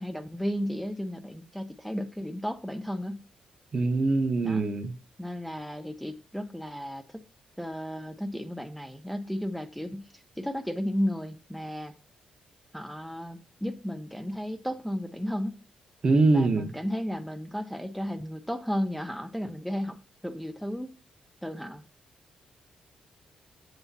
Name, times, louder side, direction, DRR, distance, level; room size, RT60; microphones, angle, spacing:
voice 1, 0.0-3.2 4.4-4.7 5.2-7.2 7.6-11.9 12.7-15.6 16.3-20.0 20.2-20.9 21.4-21.8, equal, ahead, 0.5 m, -34 dB
voice 2, 3.7-4.9 16.0-16.7, right 3 dB, 40° right, 0.9 m, -23 dB
8.0 x 6.9 x 2.7 m
cardioid pair, 120°, 2 cm